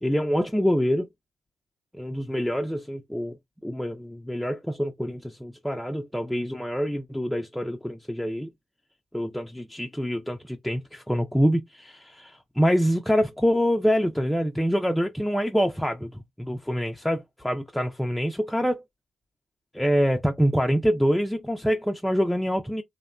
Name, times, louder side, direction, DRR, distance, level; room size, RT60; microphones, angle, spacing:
voice 1, 0.0-1.0 1.9-3.4 3.6-8.5 9.1-16.1 16.4-18.8 19.7-22.8, equal, 5° left, 0.5 m, -25 dB
2.7 x 2.1 x 2.5 m
supercardioid pair, 55°, 0 cm